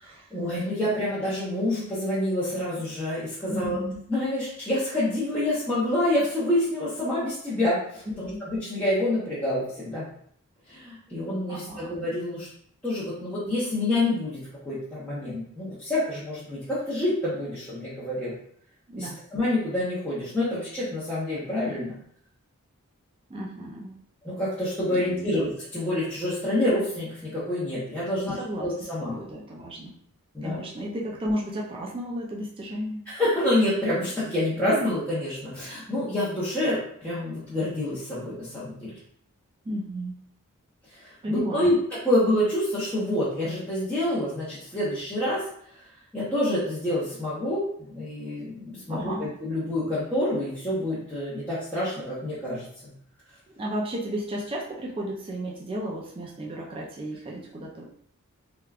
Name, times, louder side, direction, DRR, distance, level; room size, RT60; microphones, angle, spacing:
voice 1, 0.3-3.8 4.1-10.1 10.7-12.5 12.8-18.3 19.0-21.9 24.2-29.2 30.3-30.6 33.1-38.9 40.9-45.4 45.7-45.8 46.1-49.1 49.4-52.9, left 1 dB, 5° left, -12 dB, 0.7 m, -27 dB
voice 2, 3.5-4.0 8.1-8.4 11.5-12.0 18.9-19.2 23.3-24.0 24.9-25.3 28.3-30.0 30.4-33.0 39.7-40.2 41.2-41.7 48.9-49.3 53.6-57.8, equal, 25° right, -3 dB, 0.3 m, -33 dB
3.3 x 2.2 x 2.3 m, 0.63 s
head